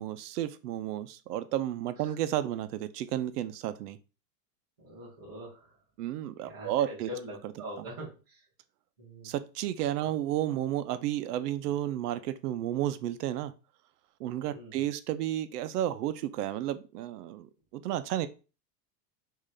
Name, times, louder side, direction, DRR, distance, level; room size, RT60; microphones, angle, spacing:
voice 1, 0.0-4.0 6.0-7.1 9.2-13.5 14.2-18.3, right 12 dB, 70° right, 12 dB, 0.6 m, -32 dB
voice 2, 4.8-5.8 6.4-8.5 9.0-9.3 10.0-10.1 14.5-14.8, equal, 15° right, -7 dB, 0.3 m, -44 dB
3.8 x 2.6 x 3.2 m, 0.33 s
supercardioid pair, 170°, 48 cm